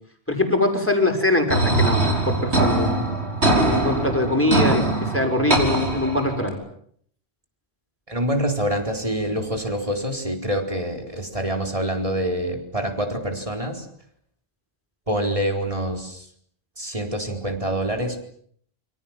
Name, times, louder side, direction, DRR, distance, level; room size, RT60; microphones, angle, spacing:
voice 1, 0.3-3.0 3.6-6.6, left 2 dB, 10° left, 4 dB, 6.1 m, -22 dB
sound 1, 1.5-6.5, right 2 dB, 85° right, 5.6 m, -22 dB
voice 2, 8.1-13.9 15.1-16.3 16.8-18.2, right 1 dB, 30° right, 4 dB, 4.6 m, -26 dB
28.5 x 25.0 x 7.5 m, 0.64 s
omnidirectional pair, 1.1 m